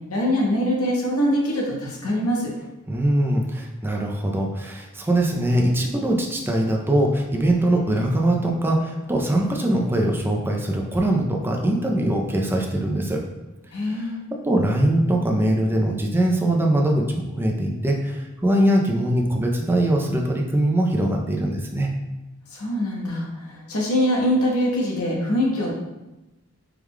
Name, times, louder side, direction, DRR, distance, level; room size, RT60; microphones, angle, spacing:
voice 1, 0.1-2.5 13.7-14.2 22.5-25.7, equal, 90° left, -2 dB, 1.0 m, -23 dB
voice 2, 2.9-13.2 13.9-14.1 14.4-21.9, right 1 dB, 10° right, 0 dB, 0.4 m, -22 dB
4.6 x 2.3 x 3.6 m, 1.0 s
head